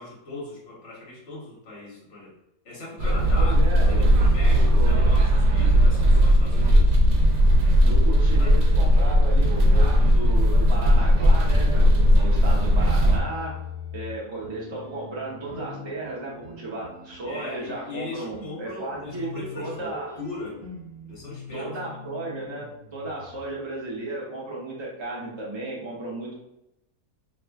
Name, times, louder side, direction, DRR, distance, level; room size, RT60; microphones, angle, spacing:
voice 1, 0.0-2.3 2.6-6.9 8.4-8.6 17.2-19.9 20.2-20.6 21.0-21.7, left 2 dB, 50° left, -4 dB, 1.3 m, -39 dB
voice 2, 3.0-4.0 4.4-5.1 7.8-13.5 13.9-20.1 21.5-26.4, right 2 dB, 25° right, -5 dB, 0.6 m, -34 dB
sound 1, 3.0-13.2, equal, 75° right, 1.1 m, -18 dB
sound 2, 9.4-10.9 11.4-23.7, left 4 dB, 60° right, 1.4 m, -42 dB
2.9 x 2.4 x 3.4 m, 0.87 s
omnidirectional pair, 1.6 m